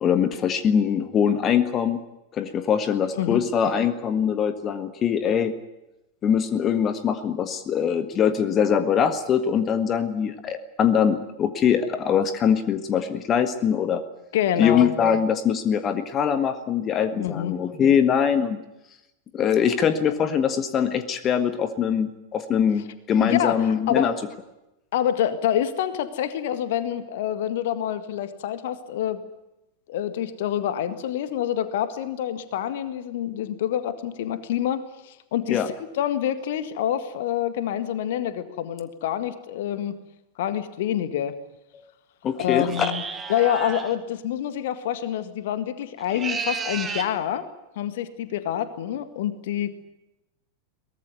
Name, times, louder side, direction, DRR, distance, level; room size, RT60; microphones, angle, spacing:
voice 1, 0.0-2.0 2.3-5.5 6.2-14.0 14.6-18.6 19.3-24.1 35.5-35.7 42.2-42.9, left 8 dB, 30° left, 10 dB, 1.6 m, -22 dB
voice 2, 14.3-14.9 17.1-17.5 19.9-20.0 23.2-24.1 24.9-29.2 29.9-35.6 35.9-40.0 40.4-41.4 42.4-43.0 43.3-47.5 47.8-49.7, left 10 dB, 55° left, 12 dB, 1.8 m, -27 dB
sound 1, 42.7-43.9 46.0-47.1, right 5 dB, 20° right, 2.4 m, -32 dB
22.5 x 19.0 x 9.5 m, 0.93 s
figure-of-eight pair, 90°, 0 cm